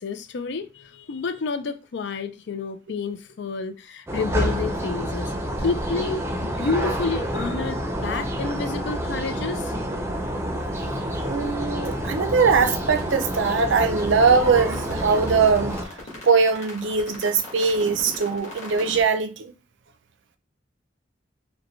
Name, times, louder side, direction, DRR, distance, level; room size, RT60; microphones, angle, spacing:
voice 1, 0.0-5.3 5.6-9.7, left 4 dB, 65° left, 0.4 m, -29 dB
sound 1, 4.1-15.8, equal, 15° right, 0.6 m, -28 dB
voice 2, 11.2-15.7 16.2-19.5, right 5 dB, 75° right, 0.5 m, -21 dB
sound 2, 12.5-19.0, left 2 dB, 40° left, 1.7 m, -40 dB
5.1 x 2.2 x 3.1 m
head